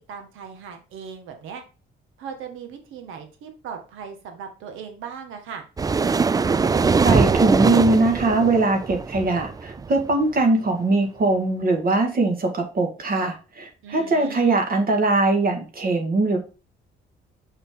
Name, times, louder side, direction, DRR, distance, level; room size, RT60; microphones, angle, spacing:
voice 1, 0.0-1.6 2.2-5.6 13.8-14.6, right 7 dB, 90° right, 5 dB, 1.7 m, -38 dB
sound 1, 5.8-10.1, right 4 dB, 20° right, 0.3 m, -22 dB
voice 2, 6.7-16.4, right 2 dB, 50° right, 2 dB, 1.9 m, -21 dB
5.9 x 5.5 x 3.8 m, 0.32 s
cardioid pair, 90°, 20 cm